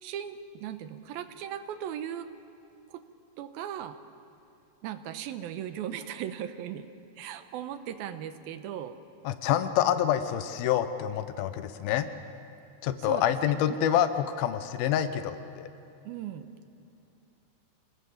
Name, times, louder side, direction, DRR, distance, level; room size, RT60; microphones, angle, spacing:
voice 1, 0.0-2.3 2.9-3.0 3.4-4.0 4.8-6.9 7.2-9.0 13.0-13.8 16.1-16.5, right 10 dB, 85° right, 10 dB, 2.7 m, -38 dB
voice 2, 9.2-12.1 12.8-15.7, left 10 dB, 85° left, 10 dB, 2.8 m, -27 dB
27.0 x 19.5 x 7.2 m, 2.7 s
omnidirectional pair, 4.2 m